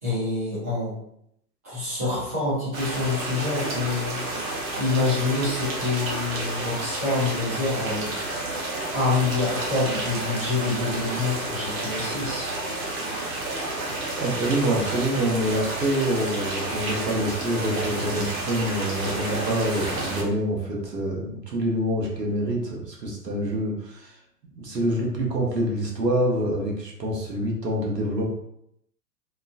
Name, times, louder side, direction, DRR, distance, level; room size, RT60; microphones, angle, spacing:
voice 1, 0.0-0.9 1.6-4.2 4.8-8.1 8.9-12.5, left 3 dB, 10° right, -10 dB, 0.3 m, -27 dB
sound 1, 2.7-20.2, right 2 dB, 55° right, 1.0 m, -30 dB
voice 2, 14.2-24.1 24.5-28.3, right 1 dB, 90° right, -2 dB, 1.0 m, -26 dB
2.9 x 2.4 x 2.3 m, 0.74 s
figure-of-eight pair, 110°, 48 cm